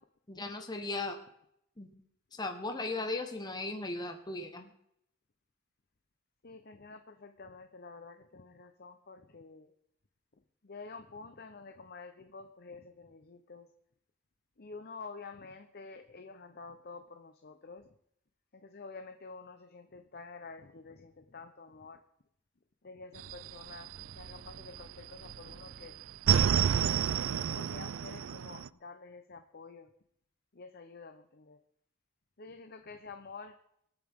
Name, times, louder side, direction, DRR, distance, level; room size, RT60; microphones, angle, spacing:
voice 1, 0.3-1.2 1.8-1.9 2.3-4.7, left 2 dB, 20° left, 5 dB, 1.3 m, -37 dB
voice 2, 6.4-9.7 10.6-13.7 14.6-17.9 18.5-22.0 22.8-29.9 30.5-31.6 32.4-33.6, left 4 dB, 45° left, 7 dB, 0.8 m, -49 dB
sound 1, 23.2-24.9 25.2-28.7, right 8 dB, 65° right, 0.4 m, -30 dB
25.0 x 8.7 x 3.7 m, 0.76 s
head